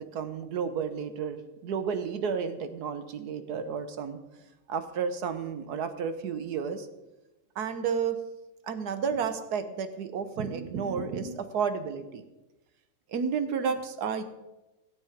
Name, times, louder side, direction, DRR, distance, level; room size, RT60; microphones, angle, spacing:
voice 1, 0.0-4.2 4.7-6.9 7.6-8.2 8.6-12.2 13.1-14.2, right 6 dB, 60° right, 10 dB, 1.1 m, -31 dB
15.5 x 8.5 x 5.0 m, 1.0 s
omnidirectional pair, 2.4 m